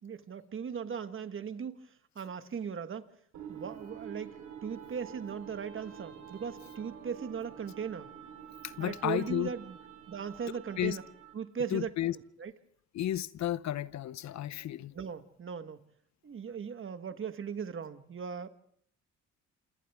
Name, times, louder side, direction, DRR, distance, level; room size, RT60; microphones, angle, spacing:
voice 1, 0.0-3.1 3.5-4.3 4.6-8.1 8.8-9.8 10.1-11.0 11.3-12.5 14.9-15.8 16.2-18.5, right 7 dB, 45° right, 1.4 m, -38 dB
sound 1, 3.3-11.5, right 8 dB, 70° right, 4.2 m, -48 dB
voice 2, 8.8-9.5 10.8-11.0 11.7-12.1 12.9-14.9, left 12 dB, 65° left, 0.7 m, -32 dB
27.5 x 27.0 x 3.6 m
cardioid pair, 90°, 30 cm